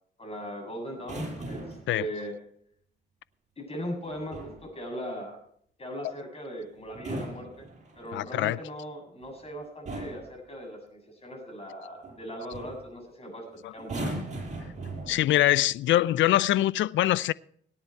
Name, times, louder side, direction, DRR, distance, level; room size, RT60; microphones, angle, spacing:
voice 1, 0.2-2.3 3.6-5.4 5.8-7.7 8.0-14.1, equal, 30° left, 7.8 m, -39 dB
sound 1, 1.0-2.0 4.0-4.7 6.8-8.2 9.2-9.5 9.9-10.3 12.0-12.2 12.5-12.8 13.8-15.5 16.4-16.6, right 2 dB, 35° right, 6.6 m, -38 dB
voice 2, 8.1-8.6 13.6-13.7 14.1-14.2 15.1-17.3, left 14 dB, 75° left, 0.5 m, -24 dB
18.5 x 10.5 x 4.6 m
cardioid pair, 90°, 20 cm